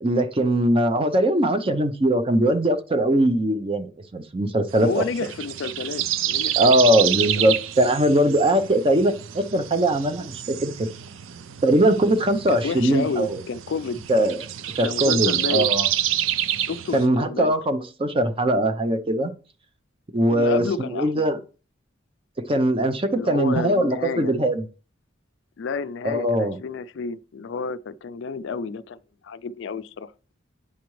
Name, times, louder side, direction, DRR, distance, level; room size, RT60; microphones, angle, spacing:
voice 1, 0.0-5.0 6.6-10.9 11.6-13.4 14.1-14.4 14.8-15.9 16.9-19.3 20.1-21.4 22.5-24.6 26.0-26.6, right 1 dB, 30° right, 0.6 m, -21 dB
sound 1, 4.7-17.1, right 11 dB, 75° right, 0.4 m, -28 dB
voice 2, 4.8-6.7 7.2-7.5 12.5-14.0 14.8-15.7 16.6-17.6 20.3-21.3 23.1-24.3 25.6-29.0 29.2-30.1, left 4 dB, 65° left, 0.4 m, -30 dB
8.4 x 5.0 x 3.1 m
head